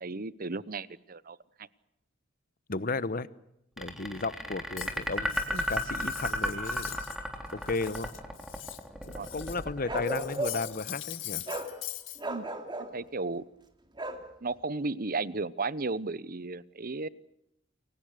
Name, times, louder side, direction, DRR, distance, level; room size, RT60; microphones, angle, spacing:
voice 1, 0.0-1.4 6.4-6.5 9.1-9.3 12.2-12.5 12.9-13.4 14.4-17.1, right 3 dB, 50° right, 18 dB, 1.0 m, -34 dB
voice 2, 2.7-3.3 3.8-7.0 7.5-8.1 9.0-11.4, left 3 dB, 50° left, 16 dB, 1.1 m, -34 dB
sound 1, 3.8-10.9, equal, ahead, 3.6 m, -34 dB
Cutlery silverware, 4.7-7.2 7.5-9.6 10.0-12.2, left 15 dB, 85° left, 1.9 m, -42 dB
Bark, 9.9-10.8 11.5-11.7 12.2-12.9 14.0-14.2, right 1 dB, 25° right, 2.7 m, -34 dB
29.5 x 23.0 x 6.6 m, 0.79 s
head